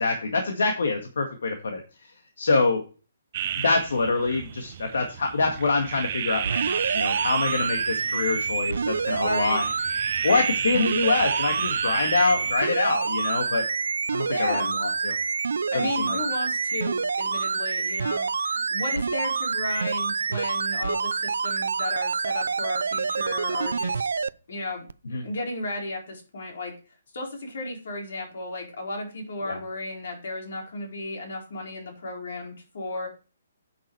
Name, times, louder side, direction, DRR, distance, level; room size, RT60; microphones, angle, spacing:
voice 1, 0.0-1.8 2.4-2.8 3.6-9.7 10.2-13.6 14.1-15.1 15.7-16.2 25.1-25.2 29.5-29.6, left 3 dB, 75° left, 3 dB, 1.9 m, -25 dB
sound 1, 3.3-12.6, right 10 dB, 30° right, 0.6 m, -33 dB
sound 2, 6.4-24.3 24.9-25.0, right 5 dB, 85° right, 0.5 m, -27 dB
voice 2, 9.2-9.7 14.3-14.7 15.7-24.1 24.5-24.8 25.2-26.7 27.1-33.1, left 2 dB, 60° left, 0 dB, 4.3 m, -33 dB
10.0 x 6.2 x 4.6 m, 0.36 s
hypercardioid pair, 175°, 0 cm